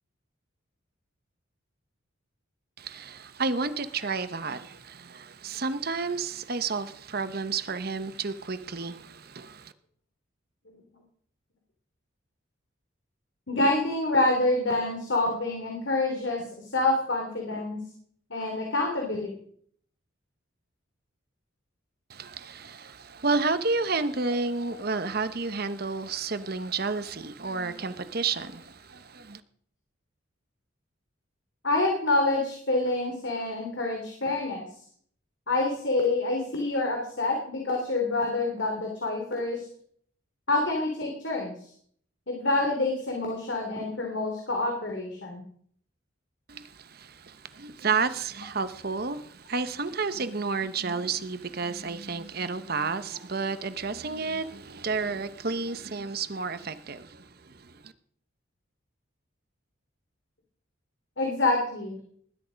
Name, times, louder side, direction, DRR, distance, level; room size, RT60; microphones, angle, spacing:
voice 1, 2.9-4.8 5.4-9.0 9.4-9.5 22.2-22.9 23.2-28.6 29.3-29.4 47.6-49.2 49.5-57.0, right 4 dB, 45° right, 1.0 m, -30 dB
voice 2, 13.5-17.8 18.3-19.3 24.6-24.8 31.6-34.6 35.5-39.6 40.5-41.7 42.3-45.4 61.2-62.0, left 2 dB, 60° left, 3.2 m, -27 dB
20.0 x 11.5 x 5.2 m
head